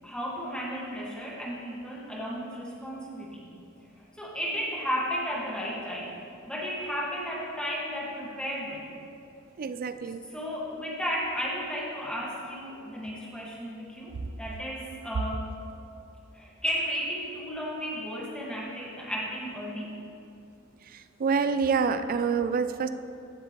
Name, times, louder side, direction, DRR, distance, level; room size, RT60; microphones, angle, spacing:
voice 1, 0.0-3.4 4.0-6.1 6.5-8.9 10.0-15.5 16.3-19.9, equal, 5° left, -5 dB, 1.6 m, -34 dB
voice 2, 9.6-10.2 21.2-22.9, right 5 dB, 40° right, 11 dB, 0.4 m, -26 dB
15.0 x 7.4 x 3.0 m, 2.6 s
head